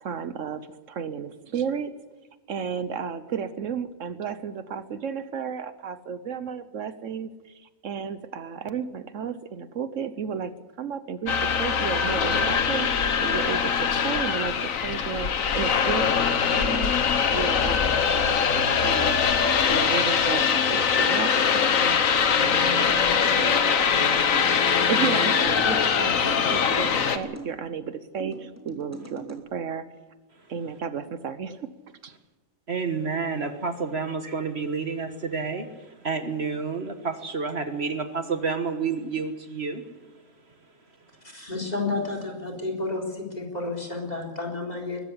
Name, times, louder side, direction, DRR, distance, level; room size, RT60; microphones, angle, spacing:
voice 1, 0.0-1.9 2.5-10.5 10.8-16.9 17.3-19.3 19.7-22.0 22.4-24.3 24.8-29.9 30.5-31.7 32.0-32.1, right 7 dB, 70° right, 13 dB, 1.2 m, -33 dB
sound 1, 11.3-27.2, left 6 dB, 80° left, 1.6 m, -22 dB
sound 2, 22.4-23.6 24.3-25.6 26.3-27.5 28.2-29.4, right 2 dB, 10° right, 2.6 m, -41 dB
voice 2, 32.7-39.8, right 5 dB, 55° right, 8 dB, 1.6 m, -29 dB
voice 3, 41.5-43.0 43.4-45.0, left 3 dB, 30° left, 3 dB, 4.2 m, -30 dB
22.0 x 13.5 x 9.6 m, 1.2 s
omnidirectional pair, 1.4 m